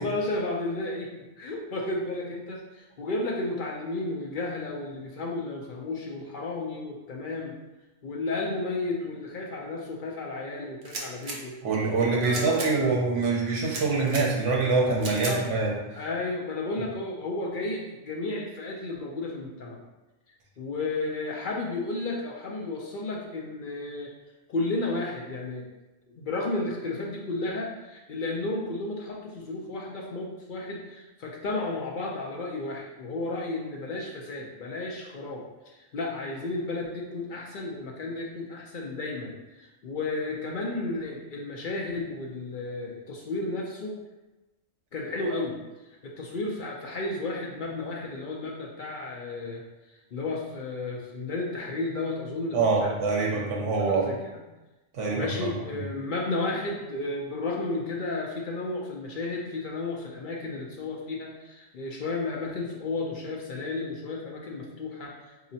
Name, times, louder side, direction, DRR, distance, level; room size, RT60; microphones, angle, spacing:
voice 1, 0.0-7.5 8.0-11.6 12.2-13.0 15.0-15.5 15.9-19.8 20.6-24.1 24.5-25.7 26.1-44.0 44.9-45.6 46.0-49.6 50.1-54.4 55.1-65.5, left 2 dB, 60° left, -2 dB, 0.5 m, -33 dB
sound 1, 10.8-11.4 12.2-12.7 13.6-14.2 15.0-15.4, right 2 dB, 50° right, 0.6 m, -36 dB
voice 2, 11.6-15.7 52.5-54.1 55.0-55.8, right 4 dB, 65° right, -2 dB, 1.1 m, -25 dB
4.0 x 2.8 x 2.7 m, 1.1 s
omnidirectional pair, 1.4 m